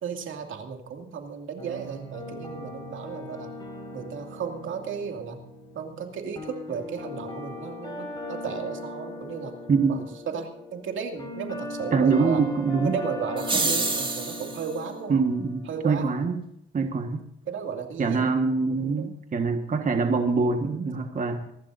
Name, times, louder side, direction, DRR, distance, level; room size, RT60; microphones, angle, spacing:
voice 1, 0.0-3.5 3.9-5.4 5.7-9.5 9.9-10.0 10.3-12.4 12.8-15.2 15.7-16.2 17.4-18.3 18.6-19.1, right 6 dB, 80° right, 4 dB, 2.4 m, -34 dB
sound 1, 1.6-16.0, left 1 dB, 20° left, 5.2 m, -39 dB
voice 2, 11.9-13.0 15.1-16.3 16.7-17.2 18.0-21.4, right 4 dB, 40° right, 5 dB, 1.5 m, -24 dB
sound 2, 13.4-14.7, right 3 dB, 25° right, 2.2 m, -27 dB
26.0 x 12.0 x 2.7 m, 0.76 s
cardioid pair, 100°, 20 cm